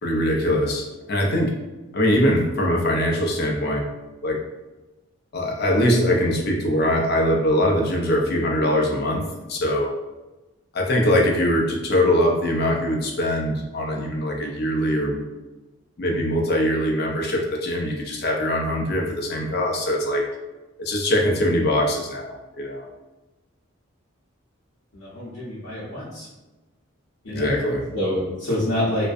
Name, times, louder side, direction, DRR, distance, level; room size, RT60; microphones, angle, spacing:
voice 1, 0.0-1.5 1.9-3.9 4.2-4.4 5.3-9.9 10.7-15.2 16.0-20.3 20.8-22.8 27.3-27.9, left 1 dB, 50° left, 0 dB, 0.4 m, -22 dB
voice 2, 24.9-26.3 27.2-27.5 27.9-29.1, left 1 dB, 70° left, -9 dB, 0.7 m, -26 dB
2.4 x 2.1 x 2.5 m, 1.1 s
head